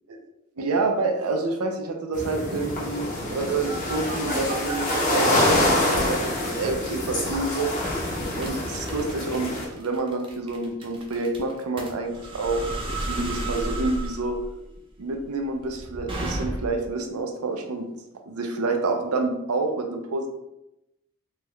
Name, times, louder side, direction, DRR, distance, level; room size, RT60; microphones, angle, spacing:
voice 1, 0.6-7.7 8.4-12.6 13.0-14.4 15.0-17.9 18.3-20.3, right 3 dB, 90° right, 4 dB, 0.5 m, -28 dB
sound 1, 2.1-9.7, left 1 dB, 35° left, 0.8 m, -26 dB
sound 2, 3.2-5.0 5.5-6.1 6.6-6.8 7.3-7.5 7.8-16.9, right 1 dB, 25° right, 0.4 m, -33 dB
3.4 x 2.2 x 3.1 m, 0.89 s
head